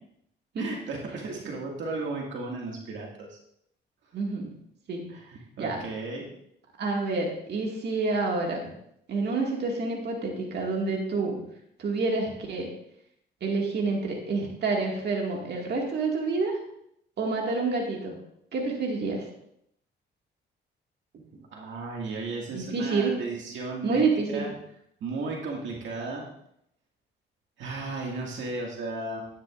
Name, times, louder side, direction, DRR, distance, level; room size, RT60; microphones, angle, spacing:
voice 1, 0.6-3.4 5.1-6.3 21.5-24.5 25.0-26.3 27.6-29.3, right 3 dB, 75° right, -1 dB, 2.0 m, -35 dB
voice 2, 4.1-4.5 4.9-5.0 5.6-5.8 6.8-8.6 9.1-11.4 11.8-12.7 13.4-16.6 17.2-18.2 18.5-19.3 22.5-23.1 23.8-24.5, right 3 dB, 55° right, 0 dB, 2.0 m, -28 dB
11.5 x 10.0 x 2.5 m, 0.73 s
cardioid pair, 90°, 20 cm